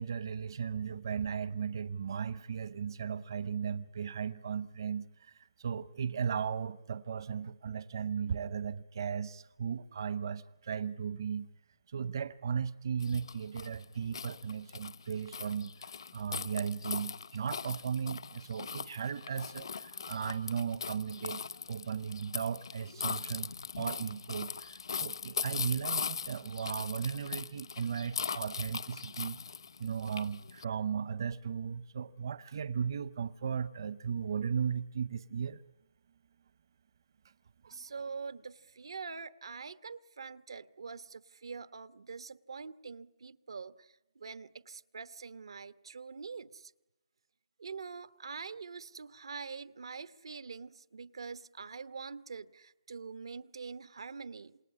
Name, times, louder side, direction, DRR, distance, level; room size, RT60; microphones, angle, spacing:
voice 1, 0.0-11.5 11.9-29.4 29.8-35.6 37.6-37.8, right 7 dB, 55° right, 0.9 m, -36 dB
sound 1, 13.0-30.6, left 6 dB, 70° left, 0.9 m, -40 dB
voice 2, 37.6-46.7 47.6-54.6, right 5 dB, 85° right, 1.2 m, -45 dB
28.0 x 20.0 x 9.7 m
hypercardioid pair, 170°, 3 cm